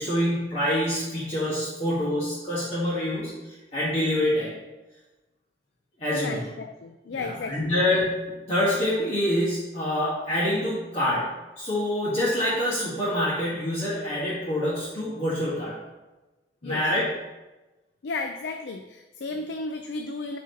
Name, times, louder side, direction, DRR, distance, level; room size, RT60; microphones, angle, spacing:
voice 1, 0.0-4.5 6.0-6.4 7.1-11.2 11.6-15.7 16.6-17.0, left 1 dB, 40° left, -10 dB, 1.6 m, -26 dB
voice 2, 6.1-7.8 16.6-16.8 18.0-20.4, left 3 dB, 80° left, 5 dB, 0.4 m, -34 dB
4.9 x 4.2 x 5.3 m, 1.1 s
head